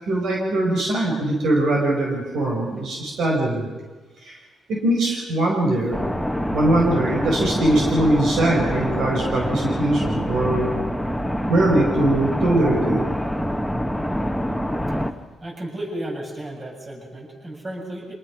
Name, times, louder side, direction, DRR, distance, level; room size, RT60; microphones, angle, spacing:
voice 1, 0.0-3.7 4.2-4.3 4.7-6.0 6.5-10.7 11.5-13.0, right 1 dB, 75° right, -1 dB, 4.6 m, -21 dB
sound 1, 5.9-15.1, equal, ahead, 1.3 m, -25 dB
voice 2, 15.4-18.1, right 1 dB, 40° right, -1 dB, 7.3 m, -33 dB
26.0 x 19.5 x 6.0 m, 1.3 s
cardioid pair, 75°, 0 cm